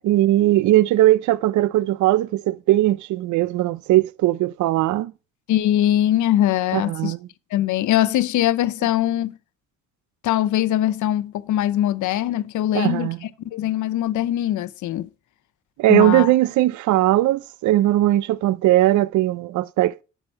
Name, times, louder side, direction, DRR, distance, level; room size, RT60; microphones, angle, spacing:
voice 1, 0.0-5.1 6.7-7.2 12.7-13.2 15.8-20.0, right 15 dB, 75° right, 0.5 m, -19 dB
voice 2, 5.5-7.1 7.5-9.3 10.2-13.1 13.4-15.1 15.9-16.3, left 12 dB, 75° left, 0.7 m, -21 dB
9.8 x 5.8 x 4.5 m
cardioid pair, 90°, 30 cm